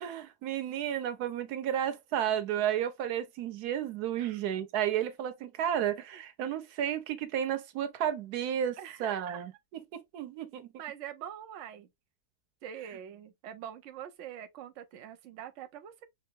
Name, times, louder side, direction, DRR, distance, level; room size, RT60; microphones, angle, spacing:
voice 1, 0.0-9.5 9.9-10.7, right 10 dB, 90° right, 1.2 m, -32 dB
voice 2, 8.8-9.4 10.8-11.9 12.6-16.1, right 10 dB, 60° right, 0.9 m, -44 dB
5.4 x 2.0 x 2.6 m
omnidirectional pair, 1.6 m